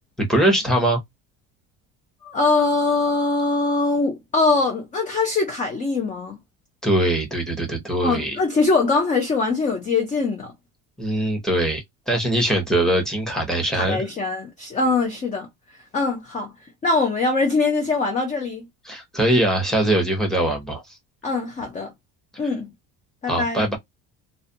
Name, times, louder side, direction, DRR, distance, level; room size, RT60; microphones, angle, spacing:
voice 1, 0.2-1.0 6.8-8.4 11.0-14.0 18.9-20.8 23.3-23.8, right 1 dB, ahead, 0.8 m, -22 dB
voice 2, 2.2-6.4 8.0-10.5 13.7-15.5 15.9-16.5 16.8-18.7 21.2-21.9 22.4-22.7 23.2-23.6, left 3 dB, 20° left, 0.4 m, -22 dB
2.3 x 2.2 x 2.6 m
cardioid pair, 145°, 36 cm